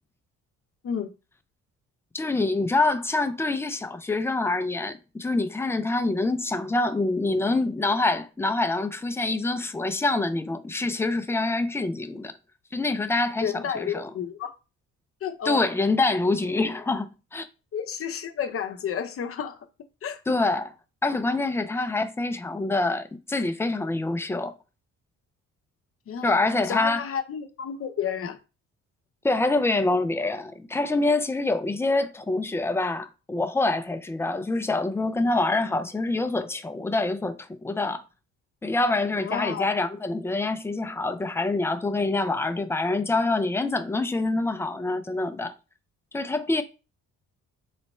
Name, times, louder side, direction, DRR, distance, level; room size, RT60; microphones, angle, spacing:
voice 1, 2.1-12.3 12.7-14.1 15.4-17.5 20.3-20.7 21.0-24.5 26.2-27.0 29.2-38.0 38.6-45.5 46.1-46.6, left 2 dB, 10° left, 0.4 m, -26 dB
voice 2, 13.4-14.5 15.2-15.6 17.7-19.6 20.0-20.2 26.1-26.4 26.7-28.4 39.1-39.7, left 7 dB, 50° left, 0.7 m, -31 dB
3.1 x 2.1 x 4.2 m
cardioid pair, 90°, 30 cm